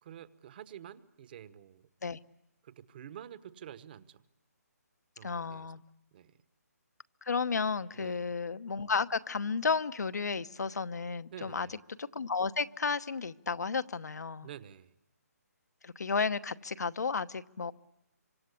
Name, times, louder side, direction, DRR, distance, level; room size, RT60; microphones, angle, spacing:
voice 1, 0.0-1.9 2.6-4.2 5.2-5.7 6.1-6.3 7.9-8.3 11.3-11.8 14.4-14.9, right 10 dB, 35° right, 1.2 m, -48 dB
voice 2, 5.2-5.8 7.2-14.5 15.8-17.7, left 5 dB, 75° left, 1.0 m, -33 dB
27.0 x 25.0 x 8.4 m
hypercardioid pair, 160°, 9 cm